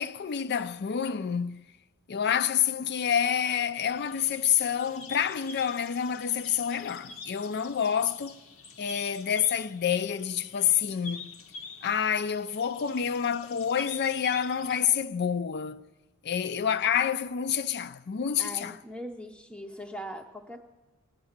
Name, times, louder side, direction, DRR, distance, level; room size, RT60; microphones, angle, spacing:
voice 1, 0.0-1.7 2.1-8.4 8.8-11.3 11.8-15.9 16.2-18.8, left 8 dB, 50° left, 0.4 m, -28 dB
sound 1, 3.7-14.8, left 4 dB, 65° left, 1.0 m, -46 dB
voice 2, 18.4-20.6, equal, 5° left, 0.6 m, -40 dB
18.0 x 9.5 x 7.3 m
head